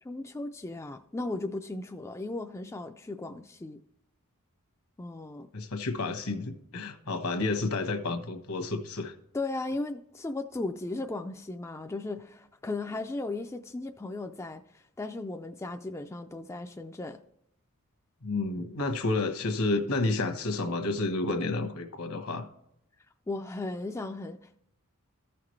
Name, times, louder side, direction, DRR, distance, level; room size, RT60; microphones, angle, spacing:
voice 1, 0.0-3.8 5.0-5.5 9.3-17.2 23.3-24.6, left 2 dB, 15° left, 6 dB, 0.3 m, -36 dB
voice 2, 5.5-9.1 18.2-22.5, left 3 dB, 75° left, 7 dB, 1.2 m, -30 dB
14.5 x 5.9 x 3.2 m, 0.77 s
head